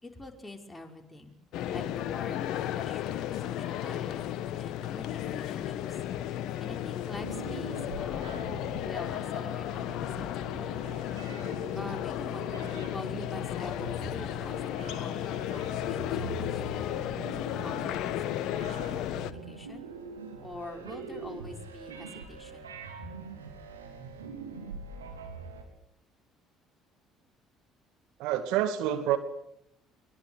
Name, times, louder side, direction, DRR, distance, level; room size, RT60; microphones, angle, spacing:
voice 1, 0.0-1.3 1.7-4.3 4.5-6.0 6.6-8.4 8.8-11.0 11.7-19.9 20.4-23.1, left 2 dB, 10° left, 2 dB, 5.8 m, -45 dB
sound 1, 1.5-19.3, left 12 dB, 60° left, 1.5 m, -34 dB
sound 2, 7.1-25.6, right 4 dB, 85° right, 4.1 m, -43 dB
voice 2, 28.2-29.2, right 11 dB, 65° right, 9 dB, 2.2 m, -27 dB
23.5 x 23.0 x 8.3 m, 0.76 s
figure-of-eight pair, 55°, 0 cm